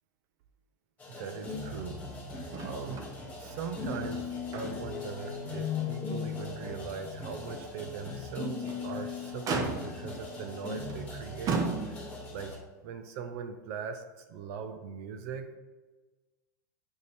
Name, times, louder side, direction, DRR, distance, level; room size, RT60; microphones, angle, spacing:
sound 1, 1.0-12.6, left 3 dB, 15° left, 1.9 m, -40 dB
voice 1, 1.1-2.0 2.3-3.1 3.4-11.6 12.3-12.5 12.8-14.0 14.3-15.6, right 6 dB, 60° right, 8 dB, 0.7 m, -40 dB
Motor vehicle (road), 2.5-3.1 3.4-3.6 4.1-5.0 5.4-5.6 6.1-6.2 8.4-8.9 9.5-10.1 10.9-11.1 11.5-12.3 13.3-13.4, right 4 dB, 35° right, 0.9 m, -34 dB
sound 2, 4.9-8.3, left 9 dB, 30° left, 0.7 m, -38 dB
6.7 x 4.7 x 3.4 m, 1.2 s
hypercardioid pair, 105°, 10 cm